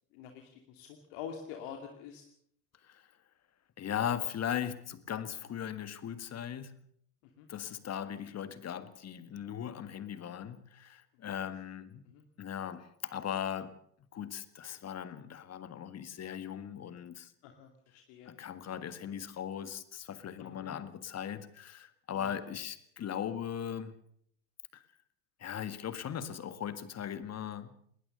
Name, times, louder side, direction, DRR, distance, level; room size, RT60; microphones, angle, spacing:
voice 1, 0.1-2.2 7.2-7.5 12.1-12.2 17.4-18.3 20.4-20.7 22.1-22.5, left 8 dB, 55° left, 2.7 m, -46 dB
voice 2, 3.8-6.7 7.5-12.0 12.4-13.7 14.1-17.3 18.3-23.9 24.7-24.8 25.4-27.7, left 9 dB, 30° left, 1.8 m, -38 dB
20.5 x 19.5 x 6.7 m
hypercardioid pair, 80°, 49 cm